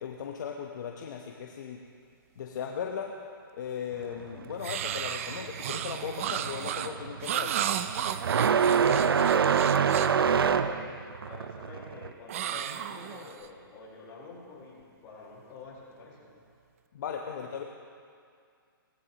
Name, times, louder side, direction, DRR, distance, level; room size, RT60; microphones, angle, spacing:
voice 1, 0.0-1.8 2.4-3.1 3.6-7.6 16.9-17.6, left 7 dB, 50° left, 1 dB, 1.0 m, -37 dB
sound 1, 3.9-12.1, right 7 dB, 85° right, 0.6 m, -27 dB
sound 2, 4.6-10.2 12.3-13.5, right 10 dB, 35° right, 0.5 m, -33 dB
voice 2, 8.4-16.3, left 4 dB, 25° left, -6 dB, 4.2 m, -48 dB
19.0 x 14.5 x 3.0 m, 2.3 s
hypercardioid pair, 160°, 12 cm